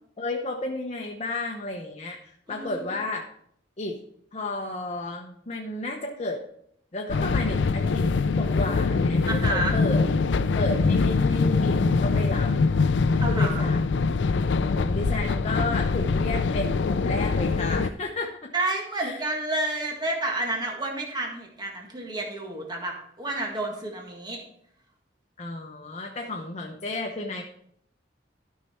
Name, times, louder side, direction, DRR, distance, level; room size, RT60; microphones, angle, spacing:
voice 1, 0.2-3.2 3.8-4.0 4.3-6.4 6.9-8.1 8.4-10.0 10.5-12.5 13.3-13.8 14.6-18.5 19.0-19.2 25.4-27.4, left 2 dB, 35° left, 1 dB, 0.9 m, -32 dB
voice 2, 2.5-2.8 9.3-9.8 13.2-13.6 18.5-24.4, right 2 dB, 25° right, 0 dB, 1.7 m, -30 dB
sound 1, 7.1-17.9, left 4 dB, 75° left, 0.4 m, -23 dB
13.0 x 5.7 x 4.4 m, 0.69 s
head